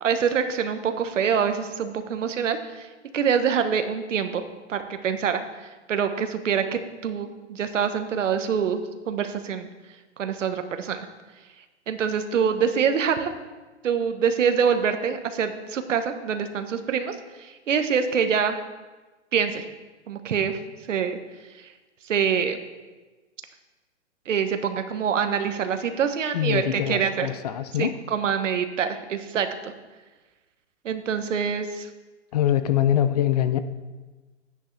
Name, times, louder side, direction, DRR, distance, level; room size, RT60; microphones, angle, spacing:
voice 1, 0.0-2.9 3.1-4.4 4.7-8.8 9.1-9.7 10.2-11.1 11.9-13.3 13.8-18.6 19.3-19.6 20.1-20.6 20.9-21.2 22.1-22.6 24.3-27.3 27.8-29.7 30.8-31.9, right 7 dB, 85° right, 8 dB, 1.2 m, -25 dB
voice 2, 26.3-27.9 32.3-33.6, left 11 dB, 35° left, 12 dB, 0.4 m, -23 dB
10.0 x 9.8 x 3.3 m, 1.2 s
hypercardioid pair, 145°, 37 cm